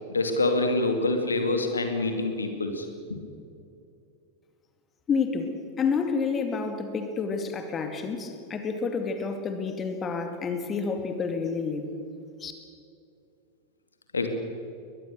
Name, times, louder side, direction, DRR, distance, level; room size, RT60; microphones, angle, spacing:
voice 1, 0.1-3.2 14.1-14.3, left 2 dB, 75° left, 6 dB, 2.4 m, -26 dB
voice 2, 5.1-11.9 12.4-12.5, left 5 dB, 25° left, 6 dB, 2.3 m, -29 dB
22.0 x 21.5 x 6.7 m, 2.5 s
figure-of-eight pair, 90°, 0 cm